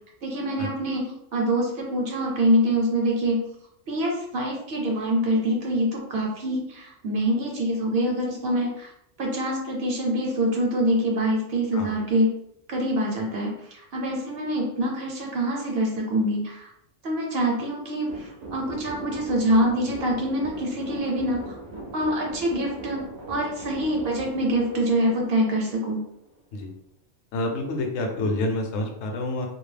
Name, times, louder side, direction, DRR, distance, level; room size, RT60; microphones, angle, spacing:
voice 1, 0.2-3.4 3.9-8.9 9.2-12.3 12.7-16.7 17.0-21.5 21.9-23.0 23.3-26.0, equal, 60° right, -1 dB, 0.8 m, -25 dB
sound 1, 18.1-26.4, right 2 dB, 80° right, 0.3 m, -40 dB
voice 2, 27.3-29.5, left 2 dB, 70° left, 3 dB, 0.9 m, -28 dB
2.4 x 2.0 x 3.2 m, 0.75 s
omnidirectional pair, 1.3 m